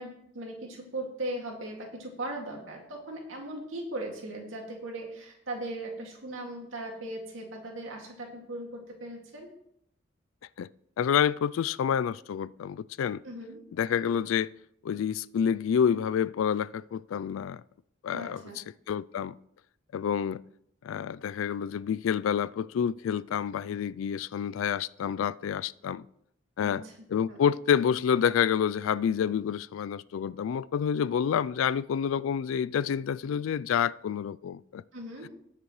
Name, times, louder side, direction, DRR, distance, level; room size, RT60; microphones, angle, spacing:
voice 1, 0.0-9.5 13.2-13.6 18.1-18.6 26.6-26.9 27.3-27.4 34.9-35.3, right 1 dB, 85° right, 2.2 m, -38 dB
voice 2, 11.0-13.2 13.8-14.5 14.8-17.6 18.0-19.4 19.9-20.4 20.8-26.0 26.6-26.8 27.1-34.8, left 8 dB, 85° left, 0.3 m, -28 dB
19.5 x 6.7 x 3.1 m
head